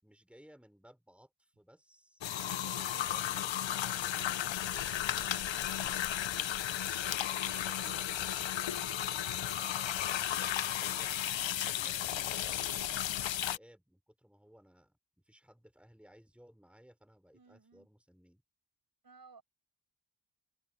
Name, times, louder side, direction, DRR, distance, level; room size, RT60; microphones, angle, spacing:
voice 1, 0.0-5.9 6.7-11.2 11.7-15.0 15.2-18.4, equal, 5° right, 5.8 m, -60 dB
sound 1, 2.2-13.6, left 11 dB, 90° left, 0.8 m, -34 dB
voice 2, 2.3-3.3 17.3-17.9 19.0-19.4, right 4 dB, 55° right, 7.1 m, -59 dB
wide cardioid pair, 90°, 44 cm